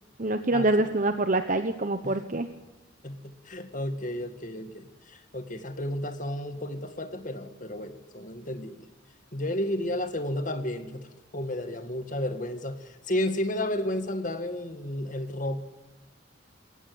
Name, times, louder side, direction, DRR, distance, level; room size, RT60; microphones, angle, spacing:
voice 1, 0.2-2.5, right 2 dB, 40° right, 8 dB, 1.1 m, -25 dB
voice 2, 3.0-8.9 9.3-11.1 11.3-15.6, left 1 dB, 40° left, 8 dB, 2.0 m, -32 dB
21.5 x 18.0 x 7.9 m, 1.1 s
head